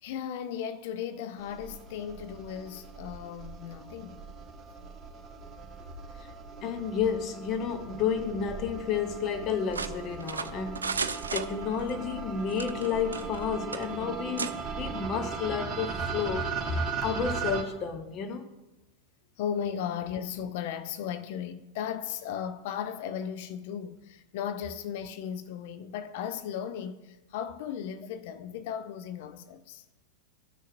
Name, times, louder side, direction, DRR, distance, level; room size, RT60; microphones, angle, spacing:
voice 1, 0.0-4.2 15.0-15.1 19.4-29.8, left 8 dB, 50° left, 0.5 m, -36 dB
sound 1, 1.4-17.6, right 5 dB, 20° right, 1.5 m, -38 dB
voice 2, 6.6-18.5, left 7 dB, 35° left, 1.0 m, -31 dB
sound 2, 9.7-12.0 12.5-13.4 13.7-13.9 14.4-14.5, right 5 dB, 75° right, 0.4 m, -34 dB
15.0 x 6.4 x 2.6 m
figure-of-eight pair, 90°, 0 cm